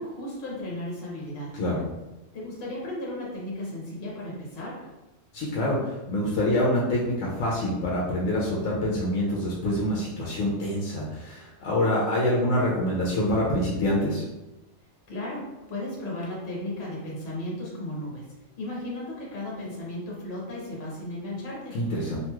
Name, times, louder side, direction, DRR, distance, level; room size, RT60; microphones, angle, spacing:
voice 1, 0.0-1.6 2.3-4.8 15.1-18.3 18.6-21.8, left 1 dB, 55° left, -4 dB, 1.1 m, -35 dB
voice 2, 5.3-14.2 21.7-22.2, left 1 dB, 80° left, -5 dB, 1.0 m, -26 dB
2.9 x 2.7 x 2.3 m, 1.0 s
omnidirectional pair, 1.4 m